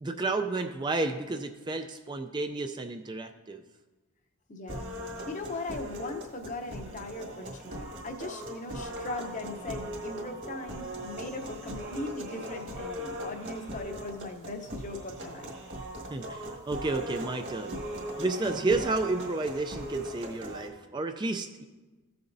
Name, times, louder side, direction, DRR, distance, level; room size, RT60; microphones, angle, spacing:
voice 1, 0.0-3.6 16.1-17.8 18.2-21.6, right 3 dB, 20° right, 7 dB, 0.3 m, -31 dB
voice 2, 4.5-4.9 5.3-15.5, left 2 dB, 35° left, 5 dB, 0.7 m, -39 dB
sound 1, 4.7-20.7, equal, 55° right, 1.8 m, -39 dB
15.0 x 6.8 x 2.6 m, 1.2 s
head